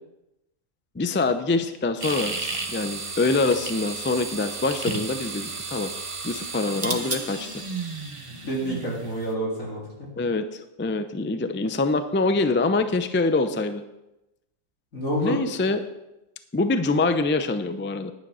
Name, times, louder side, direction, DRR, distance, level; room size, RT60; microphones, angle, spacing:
voice 1, 0.9-5.9 6.2-7.6 10.2-13.8 15.2-15.8 16.5-18.1, left 3 dB, 20° left, 9 dB, 0.3 m, -25 dB
sound 1, 2.0-9.3, right 4 dB, 25° right, 1.0 m, -33 dB
voice 2, 8.4-10.1 14.9-15.4, right 1 dB, 85° left, -4 dB, 3.7 m, -28 dB
10.5 x 9.3 x 5.6 m, 0.94 s
omnidirectional pair, 1.4 m